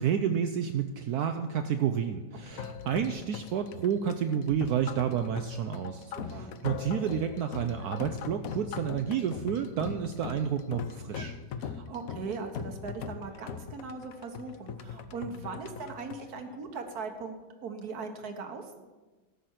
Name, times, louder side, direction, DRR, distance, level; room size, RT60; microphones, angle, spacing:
voice 1, 0.0-11.4, right 8 dB, 75° right, 8 dB, 0.9 m, -30 dB
sound 1, 2.3-17.2, left 7 dB, 70° left, 0.8 m, -40 dB
voice 2, 6.0-6.5 11.6-17.3 17.6-18.8, right 4 dB, 55° right, 6 dB, 1.4 m, -39 dB
13.5 x 5.8 x 6.5 m, 1.2 s
omnidirectional pair, 2.1 m